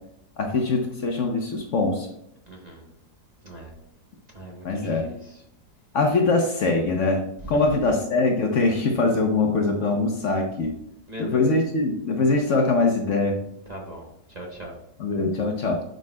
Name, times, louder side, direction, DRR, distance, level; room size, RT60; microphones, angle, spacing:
voice 1, 0.4-2.1 4.6-5.1 5.9-10.8 11.2-13.4 15.0-15.8, left 3 dB, 60° left, 3 dB, 1.0 m, -23 dB
voice 2, 2.5-2.9 3.4-3.7 4.3-5.4 7.4-7.8 11.1-11.5 13.7-14.8, equal, 30° right, -1 dB, 1.0 m, -39 dB
9.5 x 5.3 x 2.2 m, 0.75 s
omnidirectional pair, 1.7 m